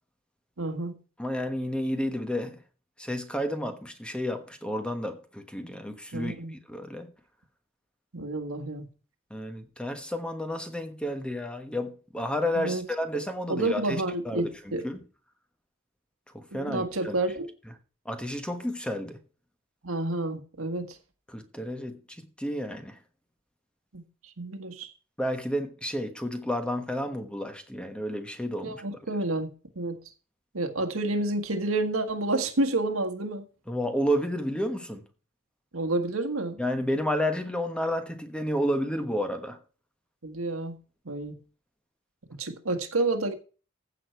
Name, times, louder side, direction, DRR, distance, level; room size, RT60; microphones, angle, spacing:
voice 1, 0.6-0.9 6.1-6.6 8.1-8.9 12.6-12.9 13.5-14.8 16.5-17.5 19.8-21.0 23.9-24.9 28.6-30.0 30.5-33.4 35.7-36.6 40.2-40.8 41.1-41.4 42.4-43.3, right 2 dB, 85° right, 1.7 m, -29 dB
voice 2, 1.2-2.6 3.0-6.3 6.7-7.1 9.3-15.0 16.3-17.1 18.0-19.2 21.3-22.0 22.4-22.9 25.2-28.8 33.7-35.0 36.6-39.6, equal, 5° left, 1.2 m, -31 dB
15.0 x 6.6 x 4.5 m
head